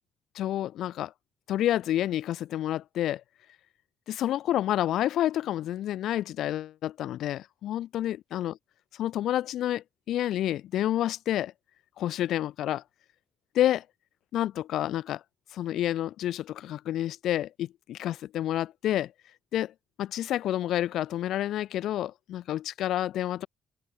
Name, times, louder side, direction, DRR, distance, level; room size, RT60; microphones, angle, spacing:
voice 1, 0.4-1.1 1.5-3.2 4.1-8.6 8.9-11.5 12.0-12.8 13.6-13.8 14.3-15.2 15.5-19.1 19.5-19.7 20.0-23.5, left 12 dB, 80° left, 2.0 m, -29 dB
cardioid pair, 90°, 0 cm